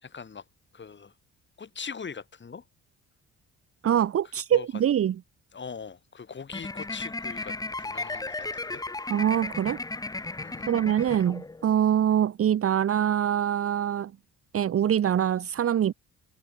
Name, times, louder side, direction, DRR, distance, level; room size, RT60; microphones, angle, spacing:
voice 1, 0.0-0.4 0.7-1.1 1.6-2.6 4.5-4.7 5.5-8.8 10.4-10.7, left 5 dB, 40° left, 4.3 m, -41 dB
voice 2, 3.8-5.1 9.1-9.8 10.7-14.1 14.5-15.9, right 10 dB, 50° right, 1.0 m, -24 dB
sound 1, 6.5-11.7, left 2 dB, 10° left, 0.8 m, -35 dB
cardioid pair, 90°, 30 cm